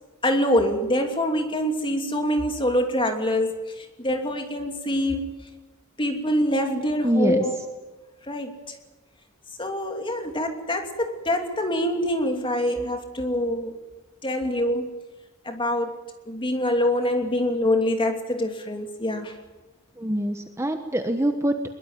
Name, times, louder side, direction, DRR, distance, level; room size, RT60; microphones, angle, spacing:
voice 1, 0.2-5.3 6.0-7.5 8.3-8.5 9.6-13.8 14.2-14.9 15.4-15.9 16.3-19.3, left 1 dB, 25° left, 4 dB, 2.8 m, -25 dB
voice 2, 7.0-7.4 19.9-21.7, right 1 dB, 10° right, 6 dB, 1.2 m, -24 dB
22.0 x 21.5 x 9.4 m, 1.2 s
head